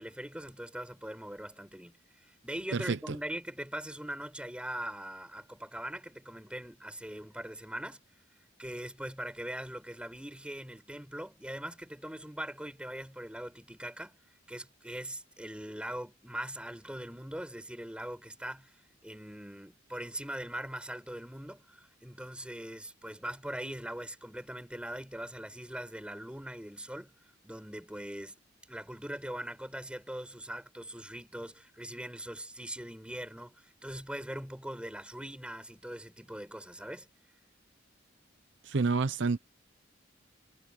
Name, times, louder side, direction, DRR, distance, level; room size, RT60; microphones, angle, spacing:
voice 1, 0.0-2.0 2.4-8.0 8.6-14.2 14.5-18.7 19.0-27.1 27.4-28.4 28.7-37.1, right 1 dB, 5° right, 5.7 m, -41 dB
voice 2, 2.7-3.2 38.6-39.4, right 4 dB, 65° right, 0.7 m, -29 dB
head